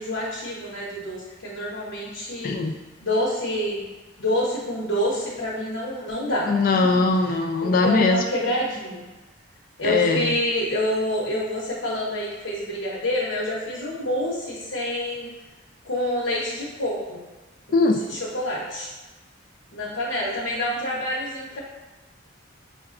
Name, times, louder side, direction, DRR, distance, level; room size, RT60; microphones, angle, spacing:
voice 1, 0.0-2.5 3.0-3.8 4.2-6.5 7.6-9.0 9.8-15.3 15.8-17.2 17.7-18.9 19.7-21.6, left 1 dB, 75° left, -6 dB, 0.8 m, -27 dB
voice 2, 2.4-2.7 6.5-8.2 9.8-10.3 17.7-18.0, left 3 dB, 45° left, 4 dB, 0.3 m, -20 dB
5.5 x 2.2 x 2.4 m, 1.2 s
head